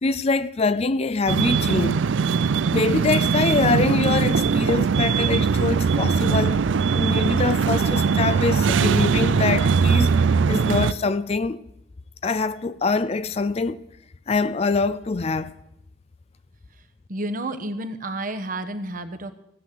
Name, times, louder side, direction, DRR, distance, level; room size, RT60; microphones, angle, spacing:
voice 1, 0.0-2.0 2.7-6.6 6.9-11.6 12.2-13.8 14.3-15.5, left 4 dB, 35° left, 0.4 m, -24 dB
sound 1, 1.3-10.9, right 5 dB, 80° right, 0.4 m, -21 dB
voice 2, 17.1-19.3, right 1 dB, 45° right, 1.1 m, -30 dB
16.0 x 8.1 x 7.6 m
head